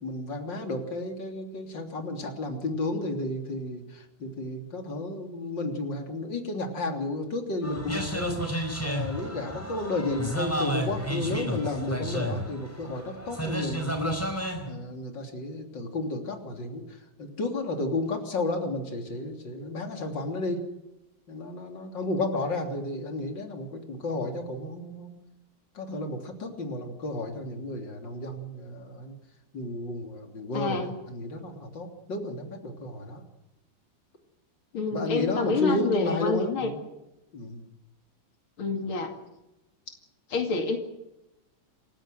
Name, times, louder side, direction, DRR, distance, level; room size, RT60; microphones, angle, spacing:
voice 1, 0.0-14.2 14.7-16.8 17.2-20.7 21.3-25.2 25.8-29.1 29.5-33.2 34.9-36.8 37.3-37.6, left 2 dB, 60° left, 4 dB, 3.9 m, -32 dB
sound 1, 7.6-14.7, equal, 5° left, 4.7 m, -32 dB
voice 2, 30.5-31.0 34.7-36.7 38.6-39.2 40.3-40.8, left 3 dB, 90° left, 5 dB, 3.2 m, -27 dB
28.5 x 15.5 x 7.8 m, 0.94 s
omnidirectional pair, 2.2 m